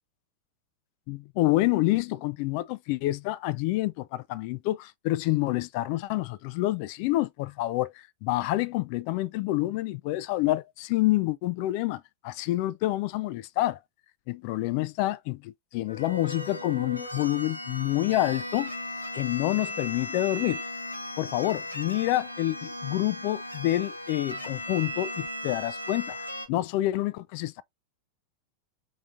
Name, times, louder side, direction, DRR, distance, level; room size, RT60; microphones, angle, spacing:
voice 1, 1.1-13.8 14.3-18.7 19.1-20.6 21.2-26.2 26.5-27.6, left 16 dB, 45° left, 0.3 m, -28 dB
sound 1, 15.9-26.5, left 1 dB, 85° left, 1.0 m, -37 dB
5.6 x 3.6 x 2.6 m
figure-of-eight pair, 90°, 0 cm